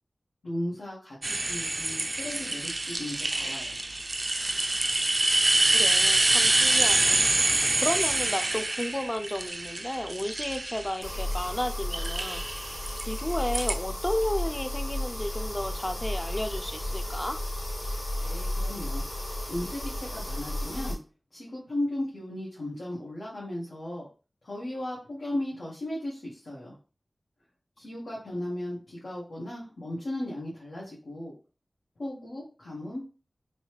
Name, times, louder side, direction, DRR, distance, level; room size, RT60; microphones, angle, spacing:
voice 1, 0.4-3.8 18.2-21.0 21.3-24.0 24.4-26.7 27.8-31.3 32.0-33.1, left 1 dB, 85° left, 1.6 m, -36 dB
sound 1, 1.2-11.4 11.9-13.7, right 2 dB, 45° right, 0.4 m, -26 dB
voice 2, 5.7-7.5 7.8-12.4 13.1-17.4, left 1 dB, 20° left, 0.5 m, -32 dB
sound 2, 11.0-21.0, left 1 dB, 50° left, 2.1 m, -33 dB
4.0 x 3.1 x 3.2 m
wide cardioid pair, 70°, 0 cm